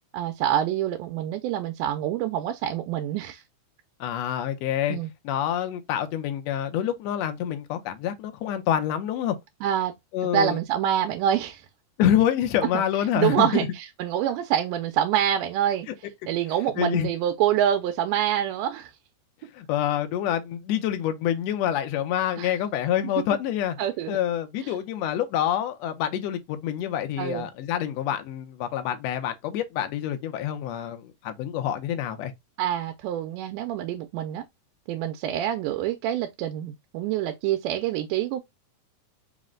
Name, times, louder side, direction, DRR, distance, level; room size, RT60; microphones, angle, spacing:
voice 1, 0.1-3.4 4.9-5.1 9.6-9.9 10.3-11.7 12.7-12.8 13.2-15.9 16.3-18.9 22.4-22.6 23.8-24.2 24.6-24.7 27.2-27.5 32.6-34.4 34.9-38.4, right 10 dB, 85° right, 2.1 m, -26 dB
voice 2, 4.0-5.0 5.2-9.3 10.1-10.6 12.0-13.7 16.8-17.1 19.5-23.8 24.1-32.3, left 10 dB, 75° left, 1.6 m, -27 dB
5.0 x 2.1 x 3.6 m
omnidirectional pair, 3.6 m